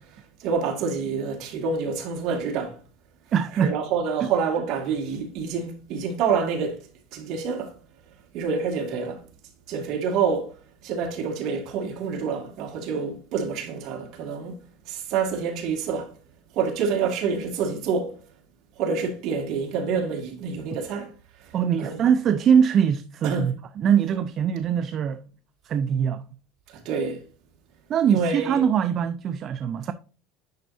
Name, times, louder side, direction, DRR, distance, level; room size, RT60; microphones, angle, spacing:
voice 1, 0.1-2.8 3.5-7.7 8.3-9.2 9.7-10.5 10.8-14.6 14.9-16.1 16.5-18.2 18.8-21.1 21.4-22.1 23.2-23.5 26.0-26.1 26.7-27.2 28.1-28.6, right 5 dB, 45° right, 2.1 m, -27 dB
voice 2, 3.3-3.8 4.2-4.3 21.5-25.2 25.6-26.2 27.9-29.9, right 8 dB, 30° right, 0.4 m, -22 dB
10.5 x 4.5 x 2.6 m
cardioid pair, 170°, 0 cm